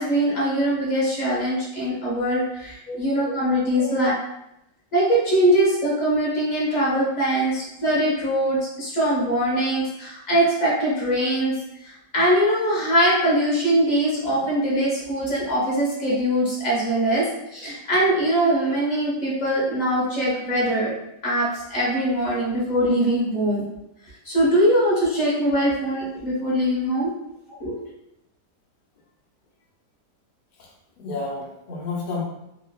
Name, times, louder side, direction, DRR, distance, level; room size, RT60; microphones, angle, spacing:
voice 1, 0.0-4.1 4.9-11.5 11.8-17.3 17.5-20.9 21.2-23.6 24.2-27.1 27.6-27.8, right 1 dB, 30° left, -6 dB, 0.9 m, -22 dB
voice 2, 31.0-32.2, left 3 dB, 60° left, -3 dB, 0.5 m, -31 dB
3.1 x 2.5 x 2.3 m, 0.85 s
omnidirectional pair, 1.8 m